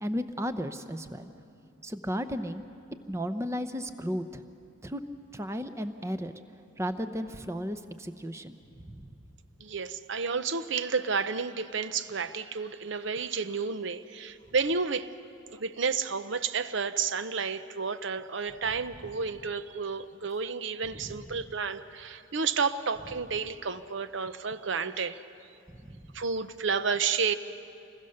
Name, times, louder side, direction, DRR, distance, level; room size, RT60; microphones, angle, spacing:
voice 1, 0.0-1.3 1.8-2.6 3.1-4.4 4.8-5.0 5.3-6.3 6.8-8.6 8.8-9.0 21.0-21.2 25.7-26.1, equal, 15° right, 10 dB, 0.7 m, -34 dB
voice 2, 9.6-15.1 15.6-25.2 26.1-27.4, right 5 dB, 55° right, 12 dB, 0.7 m, -31 dB
28.0 x 21.5 x 6.6 m, 2.6 s
head